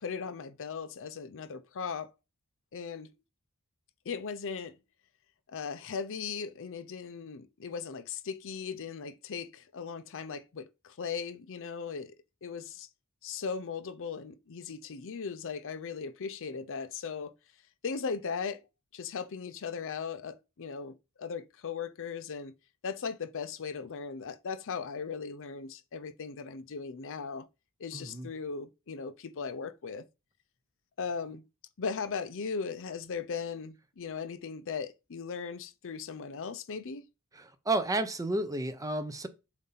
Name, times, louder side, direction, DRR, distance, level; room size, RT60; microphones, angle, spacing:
voice 1, 0.0-2.1 2.7-3.1 4.1-4.8 5.5-12.1 12.4-12.9 13.2-17.3 17.8-18.6 18.9-22.5 22.8-27.5 27.8-30.0 31.0-31.4 31.8-37.0, left 5 dB, 60° left, 0.6 m, -38 dB
voice 2, 27.9-28.3 37.4-39.3, right 2 dB, 15° right, 0.6 m, -31 dB
7.4 x 2.7 x 5.5 m
head